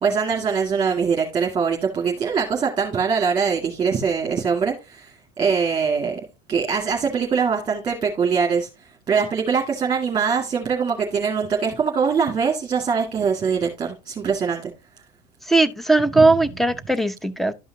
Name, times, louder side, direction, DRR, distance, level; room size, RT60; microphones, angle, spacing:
voice 1, 0.0-6.2 6.5-8.7 9.1-14.7 16.2-16.3, right 6 dB, 25° right, 1.9 m, -22 dB
voice 2, 15.5-17.5, right 2 dB, ahead, 0.7 m, -18 dB
12.0 x 5.5 x 2.7 m
supercardioid pair, 105°, 17 cm